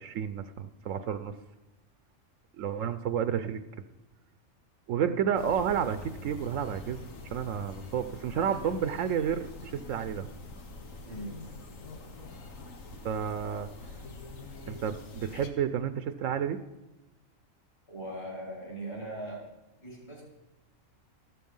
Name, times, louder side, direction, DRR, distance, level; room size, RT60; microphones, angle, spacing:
voice 1, 0.0-1.4 2.6-3.6 4.9-7.0 7.3-10.3 13.0-13.7 14.7-16.6, right 8 dB, 75° right, 11 dB, 1.0 m, -31 dB
sound 1, 5.3-15.5, left 2 dB, 85° left, 1.9 m, -45 dB
voice 2, 17.9-19.5 19.8-20.2, right 1 dB, 50° left, -3 dB, 6.3 m, -39 dB
14.5 x 12.5 x 5.5 m, 1.0 s
omnidirectional pair, 1.3 m